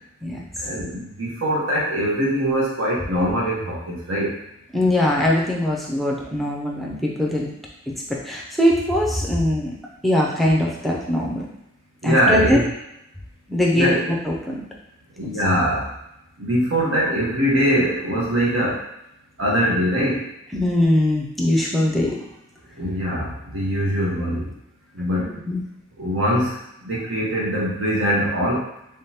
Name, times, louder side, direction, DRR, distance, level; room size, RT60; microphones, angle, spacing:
voice 1, 0.6-4.3 12.0-12.7 13.7-14.0 15.2-15.9 16.4-18.8 19.4-20.2 22.8-24.5 24.9-25.3 26.0-26.5 26.8-28.6, equal, 65° right, -5 dB, 1.0 m, -22 dB
voice 2, 4.7-7.5 8.2-9.7 10.0-11.4 12.0-12.6 13.5-14.6 15.2-15.3 20.5-22.2 25.5-25.6, left 1 dB, ahead, -2 dB, 0.5 m, -21 dB
3.6 x 3.4 x 2.8 m, 0.83 s
head